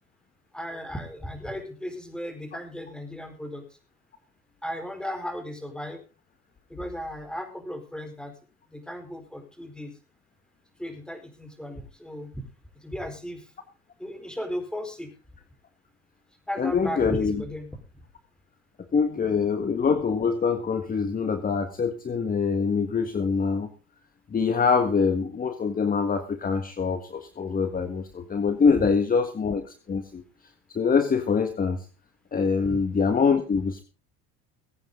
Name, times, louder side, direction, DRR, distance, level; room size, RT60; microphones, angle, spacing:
voice 1, 0.5-3.6 4.6-6.0 6.7-8.3 8.7-9.9 10.8-12.3 12.8-13.4 14.0-15.1 16.5-17.7 28.8-28.9 32.7-32.8, equal, 5° left, 6 dB, 4.5 m, -35 dB
voice 2, 16.6-17.4 18.9-23.7 24.3-30.2 30.7-31.8 32.3-33.8, left 5 dB, 25° left, 8 dB, 1.7 m, -24 dB
21.5 x 9.0 x 3.8 m, 0.34 s
supercardioid pair, 95°, 32 cm